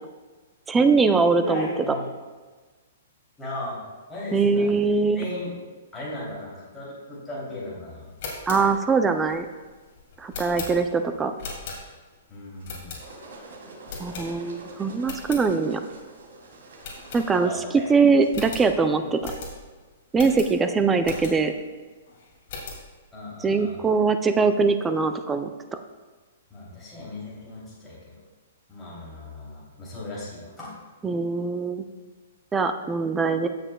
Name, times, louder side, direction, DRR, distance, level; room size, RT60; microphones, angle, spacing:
voice 1, 0.7-2.0 4.3-5.2 8.5-9.5 10.2-11.3 14.0-15.8 17.1-17.5 17.9-19.3 20.1-21.5 23.4-25.5 31.0-31.8 32.5-33.5, right 4 dB, 10° right, 8 dB, 0.4 m, -22 dB
voice 2, 1.3-2.1 3.4-3.8 4.1-4.7 5.1-5.6 5.9-8.0 12.3-13.0 17.4-17.8 23.1-23.8 26.5-28.1 28.7-30.7, left 2 dB, 5° left, -9 dB, 2.9 m, -36 dB
sound 1, 8.0-12.2 12.6-13.4 13.9-14.7 15.0-15.5 15.9-16.0 16.2-16.4 16.8-17.7 18.0-18.1 18.3-21.6 22.1-22.9, left 4 dB, 45° left, 2.4 m, -39 dB
sound 2, 12.6-18.5, right 2 dB, 80° right, 2.8 m, -46 dB
16.0 x 6.5 x 2.3 m, 1.3 s
hypercardioid pair, 160°, 0 cm